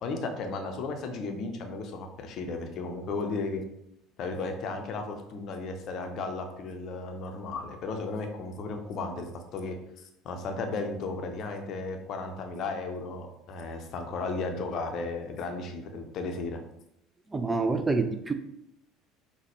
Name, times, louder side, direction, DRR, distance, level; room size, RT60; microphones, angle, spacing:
voice 1, 0.0-3.6 4.2-16.6, left 3 dB, 45° left, 4 dB, 0.6 m, -35 dB
voice 2, 17.3-18.3, right 3 dB, 15° right, 8 dB, 0.3 m, -27 dB
5.6 x 2.2 x 2.9 m, 0.80 s
figure-of-eight pair, 65°, 0 cm